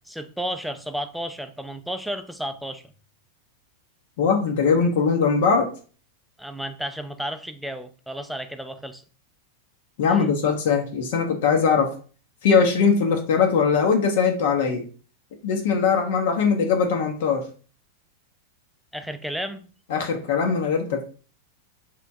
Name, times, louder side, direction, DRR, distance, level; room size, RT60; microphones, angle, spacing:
voice 1, 0.1-2.8 6.4-9.0 10.1-10.3 18.9-19.7, equal, ahead, 8 dB, 0.4 m, -32 dB
voice 2, 4.2-5.7 10.0-12.0 12.4-14.8 15.4-17.5 19.9-21.0, left 5 dB, 55° left, 3 dB, 0.5 m, -21 dB
2.9 x 2.5 x 3.4 m, 0.39 s
figure-of-eight pair, 90°, 0 cm